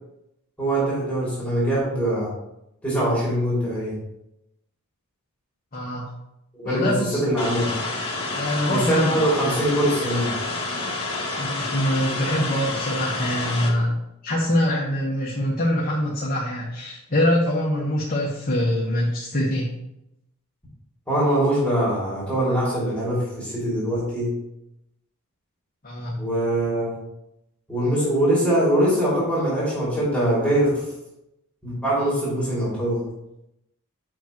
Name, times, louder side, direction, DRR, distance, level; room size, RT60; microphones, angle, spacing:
voice 1, 0.6-2.3 2.8-4.0 6.6-7.7 8.7-10.3 21.1-24.3 26.1-27.0 27.7-30.9 31.6-33.0, right 1 dB, 5° left, -8 dB, 2.9 m, -23 dB
voice 2, 5.7-6.0 6.6-7.2 8.3-9.1 11.4-14.0 14.2-19.7 25.8-26.2, left 1 dB, 40° left, -4 dB, 1.3 m, -24 dB
sound 1, 7.4-13.7, left 2 dB, 25° left, 1.5 m, -29 dB
8.3 x 5.9 x 3.1 m, 0.85 s
head